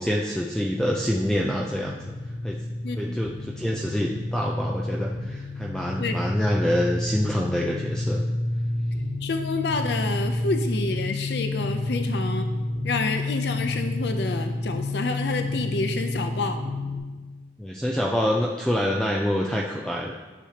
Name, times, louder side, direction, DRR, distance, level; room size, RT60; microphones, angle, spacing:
voice 1, 0.0-2.0 2.4-2.6 3.0-8.2 17.6-20.1, equal, 5° left, -1 dB, 0.4 m, -26 dB
sound 1, 0.6-17.0, left 2 dB, 45° left, 2.1 m, -30 dB
voice 2, 2.8-3.2 6.0-6.2 9.2-12.5 12.8-16.6, left 3 dB, 70° left, 6 dB, 0.5 m, -28 dB
9.9 x 6.6 x 2.9 m, 1.3 s
head